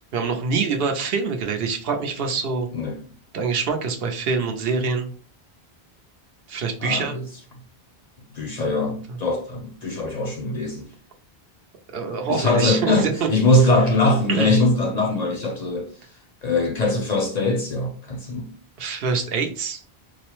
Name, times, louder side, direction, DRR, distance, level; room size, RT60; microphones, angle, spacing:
voice 1, 0.1-2.7 3.3-5.1 6.5-7.1 11.9-13.1 14.3-14.5 18.8-19.8, right 5 dB, 70° right, 0.9 m, -25 dB
voice 2, 6.8-7.3 8.3-10.9 12.3-15.9 16.4-18.5, left 2 dB, 55° left, 0.5 m, -22 dB
4.5 x 2.0 x 3.0 m
omnidirectional pair, 1.0 m